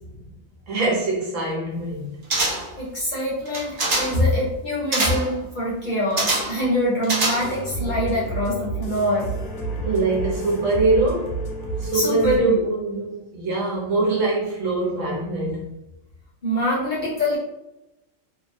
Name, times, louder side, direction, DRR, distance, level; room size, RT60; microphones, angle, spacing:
voice 1, 0.7-2.2 4.1-4.2 9.8-11.4 11.8-15.7, right 2 dB, 70° right, 1.1 m, -23 dB
sound 1, 2.3-2.8 3.5-4.2 4.9-5.3 6.2-6.6 7.0-7.7 8.0-8.1, right 2 dB, 50° right, 0.8 m, -24 dB
voice 2, 2.8-9.3 11.9-12.6 16.4-17.4, equal, 40° left, 0.9 m, -25 dB
sound 2, 7.4-12.4, right 3 dB, 85° left, 1.2 m, -30 dB
2.9 x 2.1 x 2.6 m
omnidirectional pair, 1.4 m